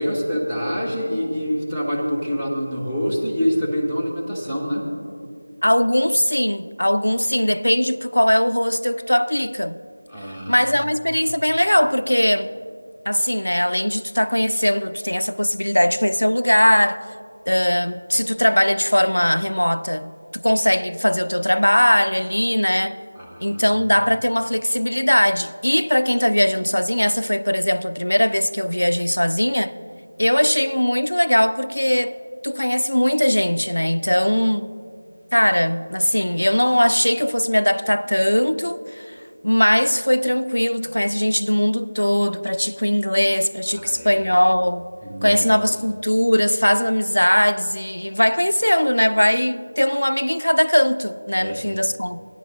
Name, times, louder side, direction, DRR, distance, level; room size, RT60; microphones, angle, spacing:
voice 1, 0.0-4.9 10.1-10.6 23.2-23.6 43.7-44.2 45.1-45.5 51.4-51.7, equal, 5° right, 0.8 m, -26 dB
voice 2, 5.6-9.8 10.5-12.5 13.1-17.1 17.5-23.0 23.4-29.7 30.2-32.2 32.4-34.7 35.3-44.9 45.2-52.2, equal, 80° left, 0.3 m, -20 dB
14.5 x 10.0 x 3.0 m
figure-of-eight pair, 170°, 0 cm